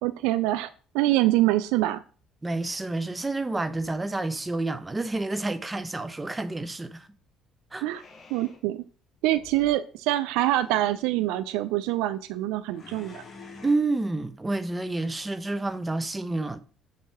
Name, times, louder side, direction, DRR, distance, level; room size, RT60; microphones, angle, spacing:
voice 1, 0.0-0.7 0.9-2.0 7.8-8.0 8.3-8.8 9.2-13.2, right 15 dB, 70° right, 0.3 m, -25 dB
voice 2, 2.4-7.1 7.7-7.8 13.6-16.6, right 2 dB, 20° right, 0.6 m, -29 dB
sound 1, 3.6-4.4 7.8-8.6 9.3-9.8 10.4-11.1 12.7-13.7, left 4 dB, 40° left, 1.5 m, -49 dB
7.0 x 2.9 x 4.6 m
hypercardioid pair, 55°, 0 cm